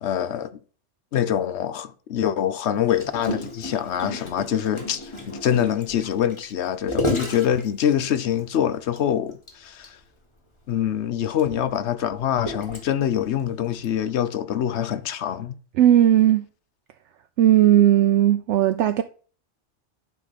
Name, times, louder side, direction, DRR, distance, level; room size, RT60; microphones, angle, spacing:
voice 1, 0.0-0.6 1.1-10.0 10.7-15.6, left 10 dB, 70° left, 1.0 m, -25 dB
Gurgling, 2.9-8.4 8.9-9.0 9.3-9.5 9.8-9.9 10.7-13.2 13.8-14.0, left 2 dB, 25° left, 1.6 m, -31 dB
voice 2, 15.8-16.4 17.4-19.0, right 12 dB, 75° right, 0.9 m, -16 dB
11.0 x 5.0 x 4.1 m
omnidirectional pair, 1.2 m